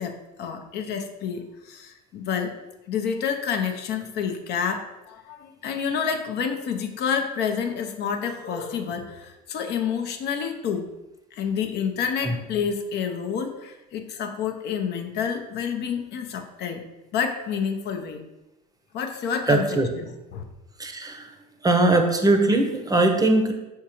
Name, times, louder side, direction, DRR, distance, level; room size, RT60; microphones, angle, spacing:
voice 1, 0.0-2.6 2.9-10.9 11.3-16.8 17.1-18.2 18.9-20.4, left 7 dB, 55° left, 5 dB, 0.6 m, -29 dB
voice 2, 19.5-19.9 20.8-21.4 21.6-23.5, right 2 dB, 20° right, 5 dB, 0.7 m, -20 dB
4.6 x 3.6 x 3.0 m, 1.0 s
supercardioid pair, 80°, 20 cm